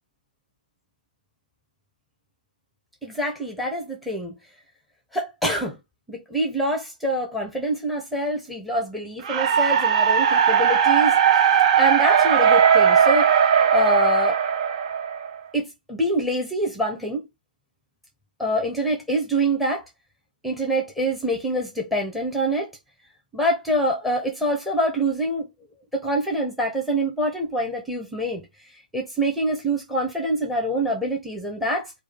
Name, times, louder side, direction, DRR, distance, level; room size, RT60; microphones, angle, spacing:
voice 1, 3.0-4.3 5.1-5.8 6.1-13.4 13.7-14.4 15.5-17.2 18.4-19.8 20.4-22.7 23.3-25.5 25.9-28.4 28.9-31.9, right 1 dB, ahead, 0.9 m, -25 dB
sound 1, 9.2-15.4, right 8 dB, 45° right, 0.6 m, -18 dB
4.9 x 2.3 x 4.2 m
hypercardioid pair, 130°, 5 cm